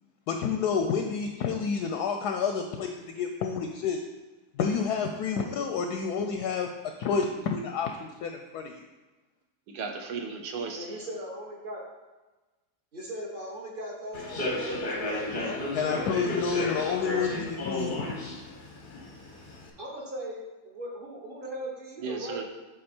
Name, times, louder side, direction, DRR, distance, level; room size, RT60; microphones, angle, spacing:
voice 1, 0.3-4.0 4.6-6.7 7.0-8.8 15.7-18.4, left 6 dB, 70° left, 5 dB, 1.0 m, -29 dB
voice 2, 9.7-10.8 22.0-22.4, right 5 dB, 70° right, 3 dB, 1.3 m, -35 dB
voice 3, 10.8-11.8 12.9-16.1 19.8-22.4, equal, 35° right, -3 dB, 1.1 m, -39 dB
Human voice / Subway metro underground, 14.1-19.7, left 1 dB, 45° left, 0.7 m, -33 dB
7.7 x 3.9 x 4.3 m, 1.2 s
omnidirectional pair, 2.0 m